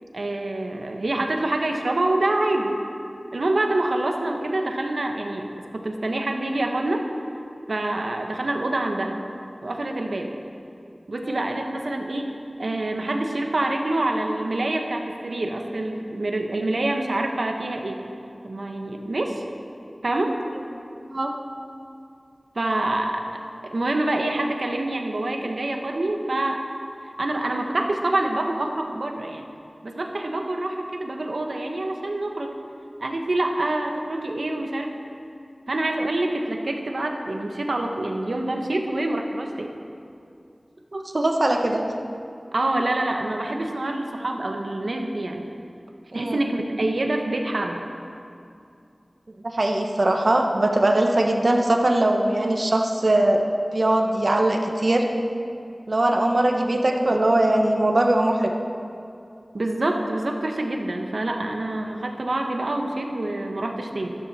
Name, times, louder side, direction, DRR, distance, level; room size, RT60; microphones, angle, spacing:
voice 1, 0.1-2.8 3.3-5.5 5.7-7.0 7.7-9.2 9.6-10.3 11.1-12.3 12.6-18.0 18.4-19.4 20.0-20.4 22.5-23.2 23.7-26.6 27.2-29.4 29.8-32.6 33.0-34.9 35.7-39.7 42.5-45.4 46.1-47.8 59.5-64.1, right 2 dB, 80° right, 3 dB, 1.2 m, -26 dB
voice 2, 40.9-41.8 46.1-46.4 49.4-53.5 53.7-55.0 55.9-58.5, right 1 dB, 60° right, 2 dB, 1.3 m, -21 dB
13.5 x 13.0 x 4.3 m, 2.5 s
wide cardioid pair, 50°, 0 cm